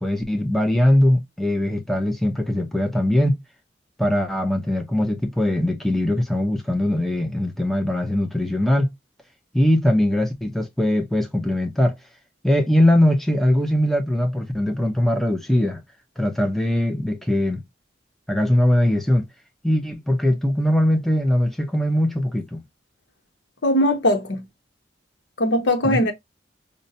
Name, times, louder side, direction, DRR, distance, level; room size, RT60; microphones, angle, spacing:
voice 1, 0.0-3.4 4.0-8.9 9.5-11.9 12.4-15.8 16.2-17.6 18.3-19.3 19.6-22.6 25.8-26.0, left 1 dB, ahead, 0.5 m, -21 dB
voice 2, 23.6-24.5 25.4-26.1, left 1 dB, 75° left, 1.0 m, -20 dB
5.2 x 2.2 x 2.6 m
head